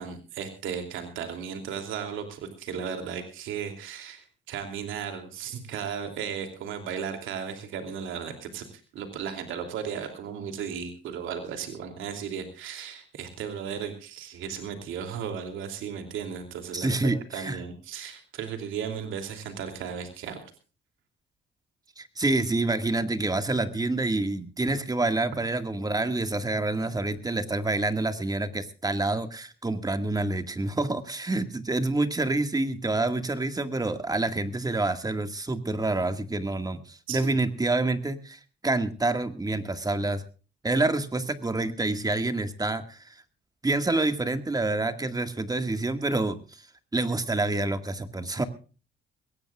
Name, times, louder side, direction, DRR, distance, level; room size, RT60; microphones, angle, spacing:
voice 1, 0.0-20.4 37.1-37.3, right 7 dB, 85° right, 6 dB, 2.9 m, -35 dB
voice 2, 16.7-17.6 22.0-40.2 40.6-43.2 43.6-46.6 46.9-48.5, right 2 dB, 20° right, 9 dB, 1.9 m, -27 dB
22.0 x 17.5 x 2.4 m, 0.35 s
cardioid pair, 90°, 20 cm